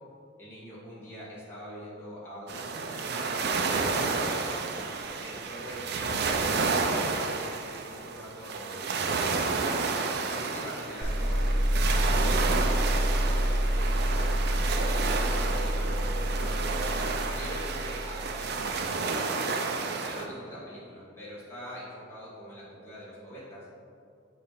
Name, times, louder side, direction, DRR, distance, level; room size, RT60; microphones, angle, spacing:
voice 1, 0.4-4.4 5.2-9.7 10.2-14.0 14.8-19.6 19.8-23.7, equal, 10° left, -9 dB, 1.4 m, -43 dB
sound 1, 2.5-20.2, right 4 dB, 55° right, 0.4 m, -31 dB
sound 2, 11.0-18.5, equal, 80° right, 1.1 m, -28 dB
6.8 x 3.1 x 4.9 m, 2.4 s
head